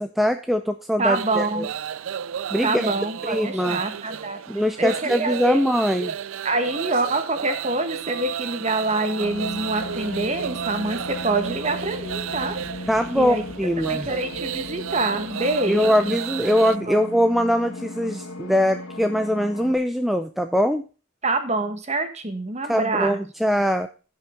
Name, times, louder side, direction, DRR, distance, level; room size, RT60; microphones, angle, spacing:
voice 1, 0.0-1.6 2.5-2.9 3.2-3.8 4.5-6.1 12.9-14.1 15.7-20.8 22.7-23.9, equal, ahead, 7 dB, 0.4 m, -22 dB
voice 2, 1.0-1.7 2.6-4.4 4.8-5.6 6.4-12.6 13.1-16.2 16.9-17.0 21.2-23.2, right 2 dB, 30° right, 8 dB, 1.4 m, -26 dB
sound 1, 1.1-16.8, right 8 dB, 70° right, 0.4 m, -32 dB
sound 2, 9.2-19.7, left 1 dB, 85° left, 2.1 m, -36 dB
15.5 x 5.6 x 3.7 m, 0.35 s
head